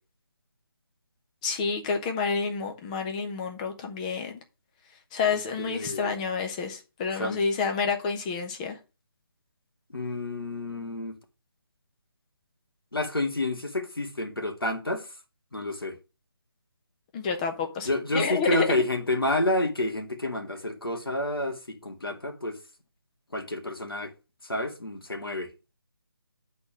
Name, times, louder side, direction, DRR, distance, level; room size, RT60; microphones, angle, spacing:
voice 1, 1.4-4.4 5.1-8.8 17.1-18.7, left 5 dB, 20° left, 1.1 m, -29 dB
voice 2, 5.2-6.1 7.2-7.4 9.9-11.2 12.9-15.1 15.5-16.0 17.9-22.6 23.3-24.1 24.4-25.5, left 1 dB, 75° left, 2.1 m, -29 dB
8.6 x 4.3 x 6.1 m
figure-of-eight pair, 150°, 12 cm